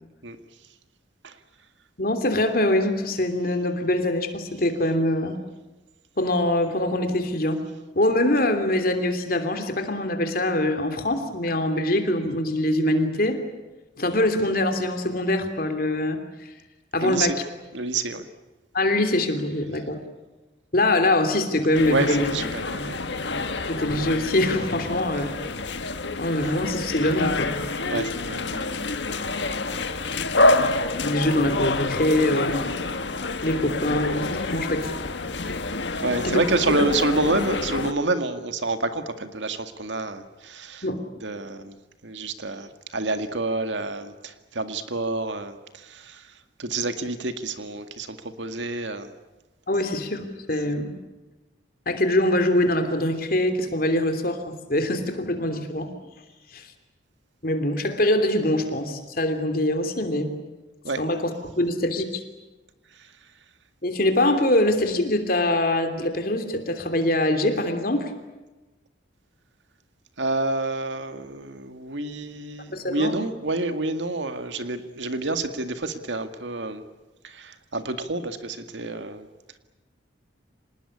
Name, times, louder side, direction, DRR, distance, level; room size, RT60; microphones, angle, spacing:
voice 1, 2.0-5.4 6.2-7.6 7.9-13.4 14.0-16.5 16.9-17.4 18.7-20.0 20.7-22.3 22.7-22.9 23.3-23.4 23.7-25.4 26.2-27.5 30.9-32.7 33.4-34.9 36.2-36.4 40.8-41.0 49.7-50.9 51.9-55.9 56.5-56.7 57.4-60.4 61.0-61.3 61.5-62.2 63.8-68.1 72.7-73.2, left 1 dB, 50° left, 7 dB, 3.0 m, -23 dB
voice 2, 17.0-17.4 17.7-18.3 21.9-23.1 27.9-29.6 36.0-40.9 41.2-41.8 42.0-49.1 60.8-61.1 62.9-63.1 70.2-76.8 77.2-79.3, right 2 dB, 75° right, 8 dB, 2.0 m, -28 dB
sound 1, 21.7-37.9, left 2 dB, 70° left, 1.5 m, -27 dB
26.0 x 19.5 x 9.9 m, 1.1 s
head